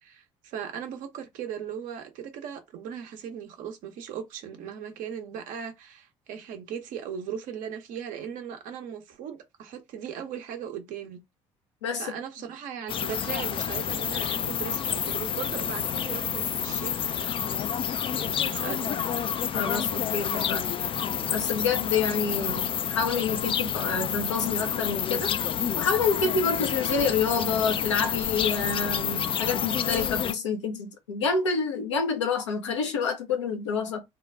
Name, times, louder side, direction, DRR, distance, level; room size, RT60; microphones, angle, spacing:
voice 1, 0.0-11.2 12.0-17.3 18.2-18.9, right 8 dB, 60° right, 1.0 m, -38 dB
voice 2, 11.8-12.1 19.5-20.6 21.3-25.3 25.8-34.0, left 5 dB, 85° left, 0.7 m, -28 dB
sound 1, 12.9-30.3, left 8 dB, 35° left, 0.4 m, -29 dB
3.8 x 2.3 x 3.4 m
figure-of-eight pair, 55°, 15 cm